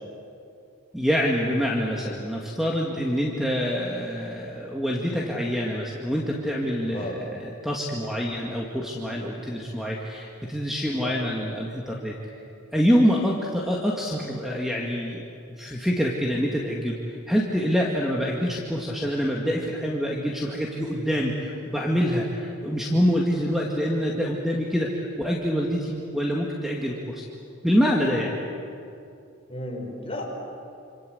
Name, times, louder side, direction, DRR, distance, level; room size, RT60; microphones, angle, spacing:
voice 1, 0.9-12.1 12.7-15.2 15.6-27.2 27.6-28.4, equal, ahead, -2 dB, 2.1 m, -26 dB
voice 2, 6.9-7.2 11.0-11.3 29.5-30.2, left 1 dB, 25° left, -1 dB, 5.5 m, -34 dB
27.5 x 27.0 x 8.1 m, 2.6 s
head